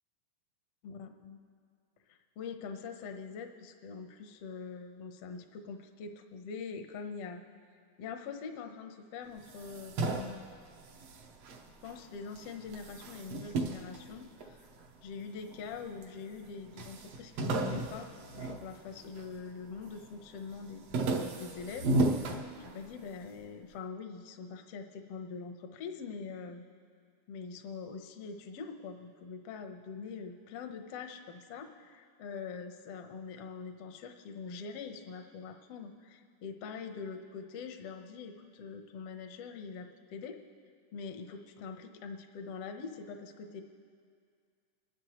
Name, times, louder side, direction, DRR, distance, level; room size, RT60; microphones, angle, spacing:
voice 1, 0.8-1.4 2.1-7.4 8.0-10.4 11.8-14.6 15.0-21.9 22.2-26.6 27.3-40.4 40.9-43.6, left 5 dB, 70° left, 5 dB, 1.5 m, -44 dB
sound 1, 9.4-12.0 12.3-14.9 15.5-16.1 16.4-16.5 16.8-19.4 19.8-20.2 20.5-23.1, right 2 dB, 65° right, 1.8 m, -34 dB
26.0 x 11.5 x 3.0 m, 2.1 s
omnidirectional pair, 3.5 m